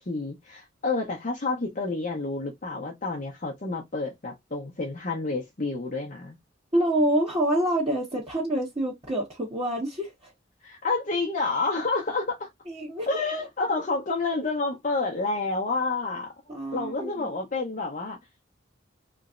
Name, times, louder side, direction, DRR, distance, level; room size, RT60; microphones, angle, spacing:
voice 1, 0.1-6.4 10.6-12.5 13.1-16.3 16.7-18.2, left 3 dB, 40° left, 0.7 m, -29 dB
voice 2, 6.7-10.3 12.7-13.2 16.5-17.3, right 1 dB, 30° right, 1.2 m, -27 dB
3.3 x 3.0 x 2.5 m
head